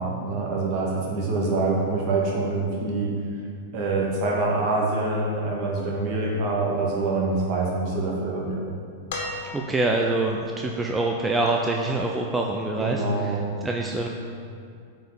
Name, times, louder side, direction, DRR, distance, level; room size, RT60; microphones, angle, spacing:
voice 1, 0.0-3.2 3.7-8.6 12.8-13.4, right 3 dB, 45° right, -2 dB, 1.9 m, -25 dB
sound 1, 9.1-10.1 11.6-11.7, left 2 dB, 60° left, 1.9 m, -34 dB
voice 2, 9.5-14.1, right 2 dB, 10° right, 0 dB, 0.6 m, -25 dB
8.8 x 5.0 x 7.1 m, 2.4 s
figure-of-eight pair, 100°, 0 cm